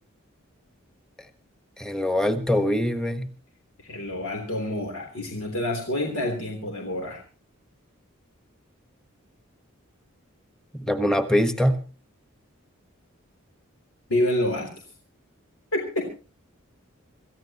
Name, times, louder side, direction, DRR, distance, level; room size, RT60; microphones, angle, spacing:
voice 1, 1.8-3.3 10.8-11.8, left 1 dB, 5° left, 9 dB, 1.3 m, -23 dB
voice 2, 3.8-7.2 14.1-14.7 15.7-16.1, left 1 dB, 85° left, 2 dB, 3.5 m, -27 dB
26.0 x 15.0 x 3.0 m, 0.35 s
head